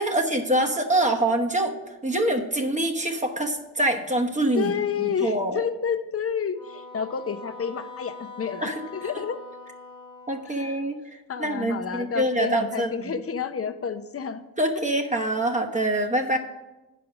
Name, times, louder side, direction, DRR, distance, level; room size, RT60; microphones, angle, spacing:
voice 1, 0.0-1.8 2.0-4.7 5.0-5.6 8.6-9.1 10.3-11.0 11.4-13.1 14.6-16.4, right 1 dB, 20° right, 3 dB, 1.1 m, -25 dB
voice 2, 4.6-9.4 10.5-10.8 11.3-14.4 14.7-14.8, left 7 dB, 35° left, 10 dB, 0.7 m, -30 dB
Wind instrument woodwind instrument, 6.5-11.0, left 3 dB, 15° left, 1.4 m, -43 dB
9.1 x 5.1 x 6.0 m, 1.1 s
cardioid pair, 75°, 39 cm